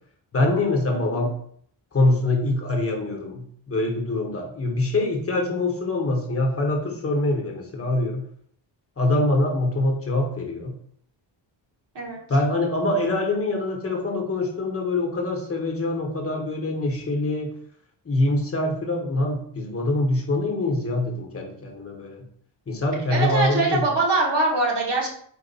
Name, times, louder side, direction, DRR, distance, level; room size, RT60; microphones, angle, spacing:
voice 1, 0.3-1.3 1.9-8.2 9.0-10.7 12.3-17.5 18.0-22.3 22.7-23.9, left 2 dB, 30° left, 1 dB, 1.1 m, -24 dB
voice 2, 0.9-1.3 11.9-12.2 23.1-25.1, right 2 dB, 60° right, -2 dB, 1.4 m, -23 dB
4.6 x 2.5 x 4.0 m, 0.63 s
wide cardioid pair, 125°, 47 cm